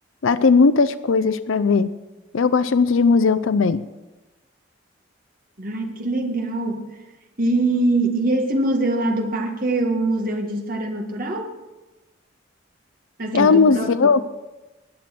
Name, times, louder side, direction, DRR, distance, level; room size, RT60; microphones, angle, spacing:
voice 1, 0.2-1.9 2.3-3.8 13.3-14.2, left 4 dB, 75° left, 14 dB, 0.5 m, -17 dB
voice 2, 5.6-6.9 7.4-11.5 13.2-14.1, right 2 dB, 45° right, 2 dB, 1.9 m, -23 dB
20.5 x 7.6 x 6.0 m, 1.1 s
head